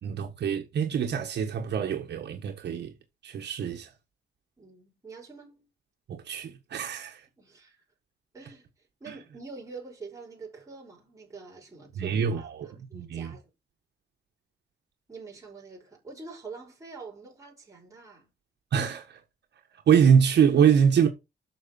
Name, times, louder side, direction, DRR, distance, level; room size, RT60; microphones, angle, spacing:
voice 1, 0.0-2.9 3.2-3.9 6.1-7.2 9.1-9.2 11.9-13.3 18.7-19.2 19.9-21.1, right 7 dB, 75° right, 1.6 m, -24 dB
voice 2, 4.6-5.7 7.4-7.8 8.3-8.7 9.0-13.4 15.1-18.3, right 4 dB, 20° right, 5.7 m, -45 dB
9.0 x 6.5 x 5.4 m
wide cardioid pair, 160°, 18 cm